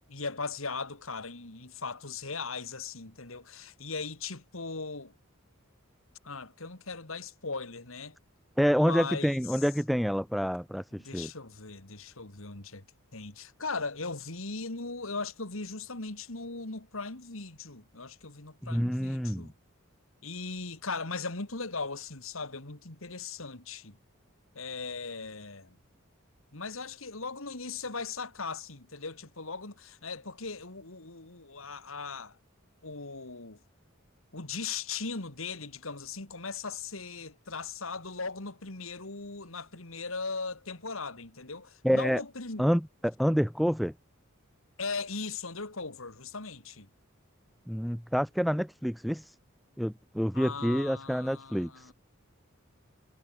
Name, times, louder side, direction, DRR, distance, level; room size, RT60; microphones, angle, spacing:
voice 1, 0.1-5.1 6.2-8.2 8.7-9.6 10.9-12.8 13.1-19.5 20.2-24.0 24.5-25.8 26.5-32.4 32.8-33.6 34.3-42.7 44.8-46.9 50.3-51.9, left 4 dB, 75° left, 2.8 m, -38 dB
voice 2, 8.6-11.3 18.6-19.5 41.8-42.2 42.6-43.9 47.7-49.3 49.8-51.9, equal, ahead, 0.4 m, -28 dB
head